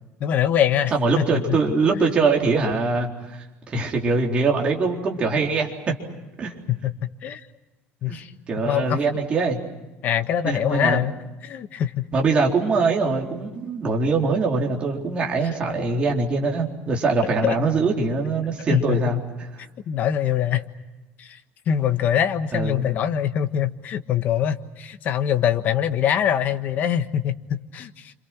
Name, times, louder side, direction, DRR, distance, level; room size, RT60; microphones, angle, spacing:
voice 1, 0.2-1.6 6.7-7.4 8.0-8.3 8.7-9.0 10.0-11.1 11.4-12.0 17.4-17.6 18.7-19.1 19.9-20.6 21.2-21.3 21.7-28.1, left 9 dB, 40° left, 9 dB, 1.4 m, -23 dB
voice 2, 0.9-3.4 3.7-6.0 6.4-6.6 8.1-8.2 8.5-9.6 10.4-11.0 12.1-19.5 22.5-22.9, right 3 dB, 25° right, 0 dB, 4.1 m, -23 dB
29.5 x 27.0 x 6.1 m, 1.1 s
cardioid pair, 170°, 5 cm